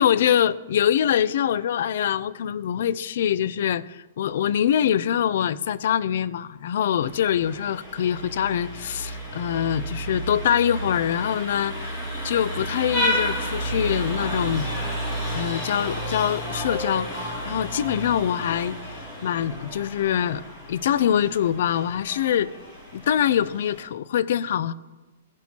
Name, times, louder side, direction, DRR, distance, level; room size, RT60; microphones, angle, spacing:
voice 1, 0.0-11.9 12.2-14.7 15.3-20.4 20.7-22.5 22.9-24.7, left 9 dB, 55° left, 17 dB, 0.3 m, -24 dB
Vehicle horn car horn honking, 7.0-23.8, equal, 10° left, 2.5 m, -32 dB
15.5 x 6.0 x 2.8 m, 1.2 s
hypercardioid pair, 175°, 0 cm